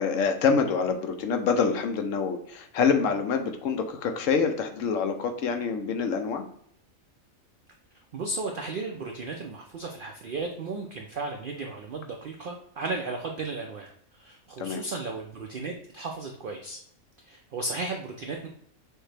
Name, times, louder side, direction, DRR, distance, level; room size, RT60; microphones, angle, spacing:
voice 1, 0.0-6.4 14.6-14.8, left 5 dB, 70° left, 6 dB, 0.9 m, -26 dB
voice 2, 8.1-16.8 17.2-18.5, right 3 dB, 70° right, 2 dB, 0.5 m, -35 dB
6.3 x 2.1 x 3.3 m, 0.67 s
omnidirectional pair, 1.5 m